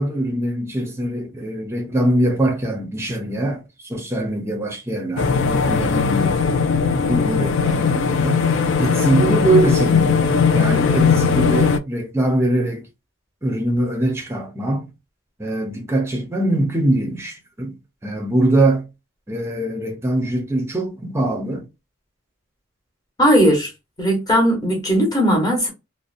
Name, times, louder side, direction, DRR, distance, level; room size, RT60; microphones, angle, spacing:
voice 1, 0.0-3.6 3.9-6.4 7.1-8.4 8.8-10.2 10.5-12.8 13.4-14.9 15.4-17.8 18.0-18.9 19.3-21.7, right 1 dB, 10° right, 0.6 m, -22 dB
sound 1, 5.2-11.8, left 5 dB, 60° left, 0.3 m, -18 dB
voice 2, 23.2-23.7 24.0-25.7, equal, 20° left, 0.9 m, -17 dB
2.7 x 2.1 x 2.4 m
head